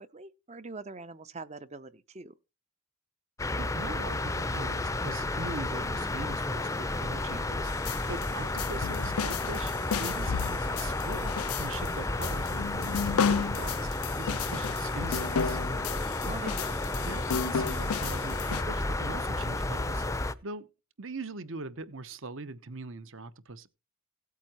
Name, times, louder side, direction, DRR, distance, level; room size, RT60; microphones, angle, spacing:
voice 1, 0.0-2.3 8.3-8.4 16.3-17.1, right 3 dB, 30° right, 0.6 m, -43 dB
sound 1, 3.4-20.3, left 2 dB, 15° left, 0.6 m, -32 dB
voice 2, 3.6-15.6 16.2-16.5 17.0-20.7 21.0-23.7, right 3 dB, 60° right, 1.0 m, -42 dB
sound 2, 7.7-18.6, left 6 dB, 75° left, 0.5 m, -33 dB
17.0 x 8.5 x 2.9 m
head